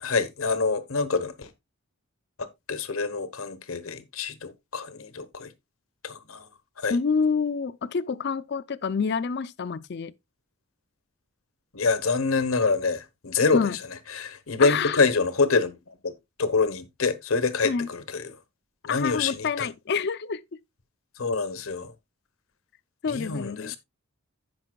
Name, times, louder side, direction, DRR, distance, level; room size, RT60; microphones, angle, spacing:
voice 1, 0.0-1.5 2.7-5.5 6.0-6.5 6.8-7.0 11.7-13.7 14.1-15.8 16.0-16.1 16.4-18.4 18.8-19.7 21.2-21.9 23.1-23.8, left 4 dB, 85° left, 1.0 m, -26 dB
voice 2, 6.9-10.1 13.5-13.8 14.6-15.0 17.6-17.9 18.8-20.4 23.0-23.8, left 5 dB, 55° left, 0.4 m, -27 dB
15.5 x 5.4 x 2.2 m
head